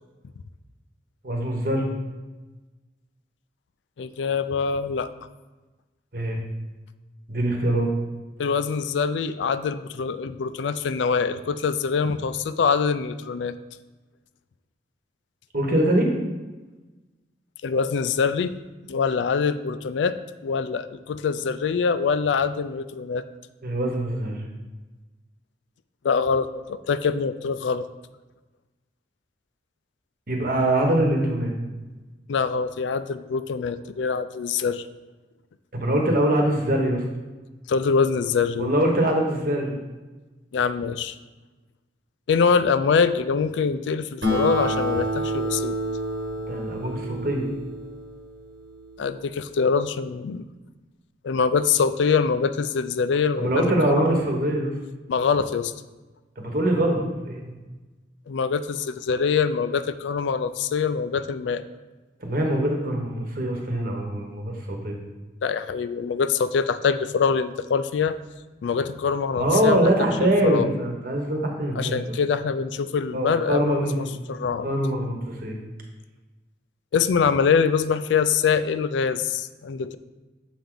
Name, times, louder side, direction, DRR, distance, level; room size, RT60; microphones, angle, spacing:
voice 1, 1.2-1.9 6.1-6.4 7.3-7.9 15.5-16.1 23.6-24.4 30.3-31.5 35.7-37.0 38.6-39.8 46.5-47.5 53.4-54.7 56.4-57.5 62.2-65.0 69.4-72.0 73.1-74.2 74.6-75.6, right 1 dB, 50° right, 1 dB, 1.1 m, -23 dB
voice 2, 4.0-5.1 8.4-13.6 17.6-18.5 18.9-23.2 26.0-27.9 32.3-34.9 37.7-38.7 40.5-41.2 42.3-45.8 49.0-50.5 51.2-54.2 55.1-55.7 58.3-61.6 65.4-68.2 68.6-69.8 70.2-70.7 71.8-74.7 76.9-80.0, left 5 dB, 85° left, 12 dB, 0.4 m, -24 dB
Acoustic guitar, 44.2-49.1, right 1 dB, 80° right, 1.3 m, -29 dB
7.1 x 4.5 x 3.9 m, 1.2 s
head